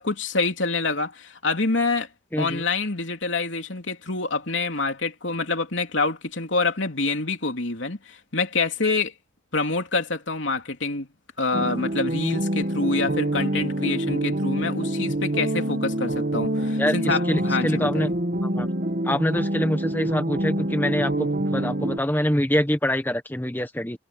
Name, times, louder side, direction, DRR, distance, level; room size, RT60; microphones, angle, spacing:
voice 1, 0.0-2.1 2.4-9.1 9.5-11.1 11.4-18.1, left 3 dB, 85° left, 3.2 m, -26 dB
voice 2, 2.3-2.6 16.8-18.1 18.4-18.7 19.0-24.0, equal, 10° left, 1.3 m, -25 dB
sound 1, 11.5-22.0, right 1 dB, 50° right, 1.7 m, -26 dB
head